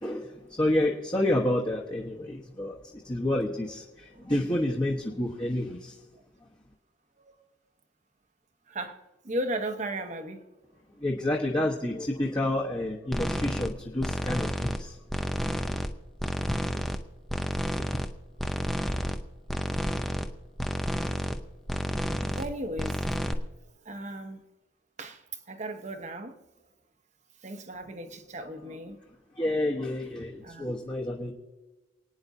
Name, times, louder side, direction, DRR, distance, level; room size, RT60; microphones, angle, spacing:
voice 1, 0.0-6.0 11.0-15.0 28.6-28.7 29.4-31.3, left 1 dB, 20° left, 1.1 m, -29 dB
voice 2, 8.7-10.5 21.1-21.2 22.3-23.2 23.8-24.5 25.0-26.4 27.4-29.0 30.4-30.7, right 1 dB, 35° right, 1.0 m, -36 dB
sound 1, 13.1-13.7 14.0-14.8 15.1-15.9 16.2-17.0 17.3-18.1 18.4-19.2 19.5-20.3 20.6-21.4 21.7-22.5 22.8-23.3, equal, ahead, 0.6 m, -30 dB
28.5 x 9.6 x 2.7 m
head